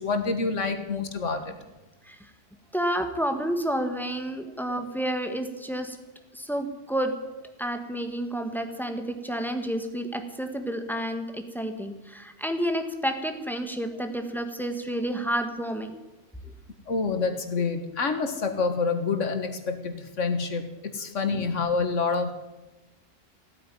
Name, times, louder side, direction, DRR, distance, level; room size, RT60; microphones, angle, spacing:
voice 1, 0.0-1.5 16.9-22.3, left 4 dB, 80° left, 7 dB, 1.9 m, -27 dB
voice 2, 2.7-6.0 6.3-7.1 7.6-15.9 21.3-21.4, right 1 dB, ahead, 6 dB, 1.5 m, -30 dB
16.0 x 9.4 x 9.2 m, 1.1 s
omnidirectional pair, 1.3 m